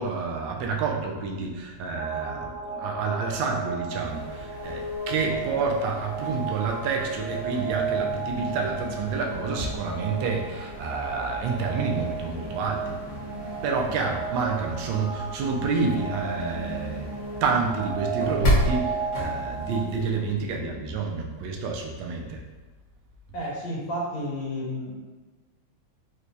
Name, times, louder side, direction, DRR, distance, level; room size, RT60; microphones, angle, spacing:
voice 1, 0.0-17.1 17.4-22.4, right 4 dB, 75° right, 0 dB, 1.2 m, -29 dB
sound 1, 1.9-19.8, right 4 dB, 45° right, 0.9 m, -34 dB
sound 2, 4.0-20.2, equal, 55° left, 1.1 m, -34 dB
voice 2, 23.3-24.9, equal, 85° left, -5 dB, 1.5 m, -31 dB
4.3 x 2.2 x 2.6 m, 1.3 s
omnidirectional pair, 2.2 m